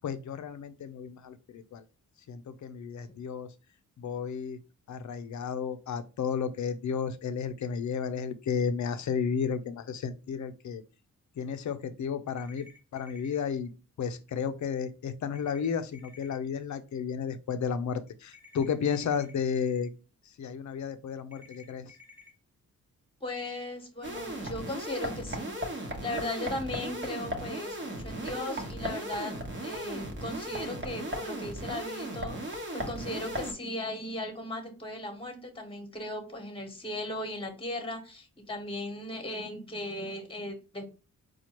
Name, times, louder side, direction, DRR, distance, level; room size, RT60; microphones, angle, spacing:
voice 1, 0.0-1.8 2.3-3.5 4.0-4.6 4.9-10.8 11.4-13.7 14.0-19.9 20.4-21.9, left 6 dB, 60° left, 11 dB, 0.6 m, -33 dB
sound 1, 12.4-13.4 15.4-16.4 18.3-19.3 21.3-22.3, left 4 dB, 5° right, 1.1 m, -54 dB
voice 2, 23.2-29.4 29.6-40.9, left 1 dB, 15° left, 4 dB, 1.2 m, -37 dB
sound 2, 24.0-33.5, right 1 dB, 35° right, 1.1 m, -36 dB
4.3 x 2.4 x 2.9 m, 0.33 s
cardioid pair, 65°, 33 cm